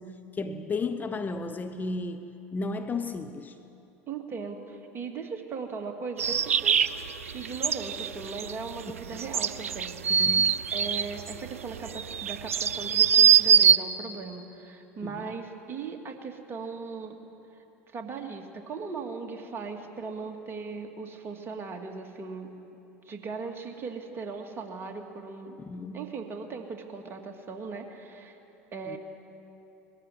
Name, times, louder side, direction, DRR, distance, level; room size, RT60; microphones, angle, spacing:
voice 1, 0.0-3.6 9.1-9.2 10.1-10.6 15.0-15.3 25.6-26.0 28.9-29.0, left 3 dB, 25° left, 0.9 m, -34 dB
voice 2, 4.1-6.8 7.3-10.3 10.7-17.2 17.5-22.5 23.1-25.6 25.9-28.4 28.7-29.0, right 4 dB, 35° right, 2.3 m, -38 dB
sound 1, 6.2-13.8, right 8 dB, 85° right, 0.5 m, -23 dB
21.0 x 15.0 x 9.5 m
hypercardioid pair, 75°, 7 cm